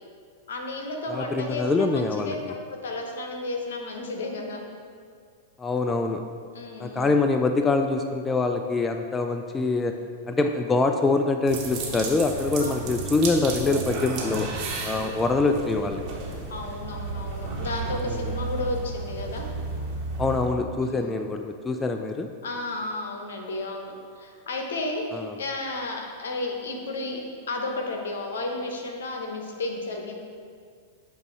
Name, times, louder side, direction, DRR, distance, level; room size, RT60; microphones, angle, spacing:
voice 1, 0.5-4.6 6.5-7.1 12.6-12.9 14.9-15.2 16.5-19.5 20.8-21.2 22.4-27.2 27.5-30.1, left 2 dB, 75° left, 2 dB, 0.9 m, -33 dB
voice 2, 1.1-2.5 5.6-6.2 6.8-9.9 10.3-14.5 14.8-16.0 18.1-18.3 20.2-22.3 25.1-25.4, left 3 dB, 15° left, 6 dB, 0.3 m, -24 dB
sound 1, 11.5-20.5, right 3 dB, 45° right, 1.3 m, -33 dB
8.0 x 2.7 x 4.5 m, 2.1 s
hypercardioid pair, 100°, 0 cm